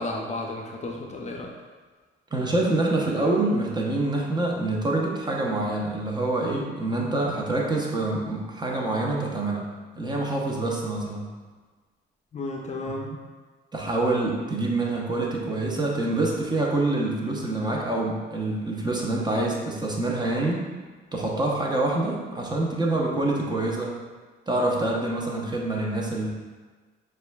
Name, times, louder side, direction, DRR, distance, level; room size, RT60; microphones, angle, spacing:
voice 1, 0.0-1.5 12.3-13.1, left 2 dB, 35° left, 0 dB, 0.5 m, -33 dB
voice 2, 2.3-9.6 10.0-11.3 13.7-20.6 21.1-24.0 24.5-26.3, right 2 dB, 20° right, -2 dB, 0.8 m, -26 dB
6.7 x 2.5 x 2.3 m, 1.4 s
cardioid pair, 90°, 20 cm